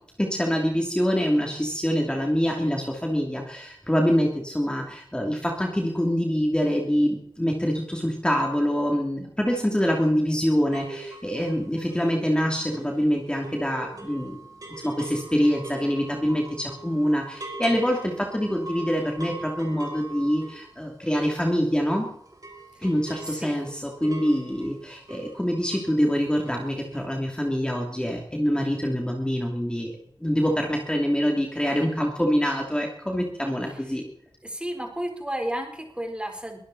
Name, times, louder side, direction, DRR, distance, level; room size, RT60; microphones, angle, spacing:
voice 1, 0.2-14.4 14.8-22.1 22.8-34.0, equal, 10° left, 1 dB, 3.0 m, -25 dB
sound 1, 10.7-22.0 22.3-26.0 26.2-26.7 26.9-27.0, right 2 dB, 45° right, 5.0 m, -42 dB
voice 2, 34.4-36.6, right 1 dB, 10° right, 3 dB, 4.1 m, -32 dB
23.0 x 13.0 x 4.2 m, 0.71 s
wide cardioid pair, 90°, 9 cm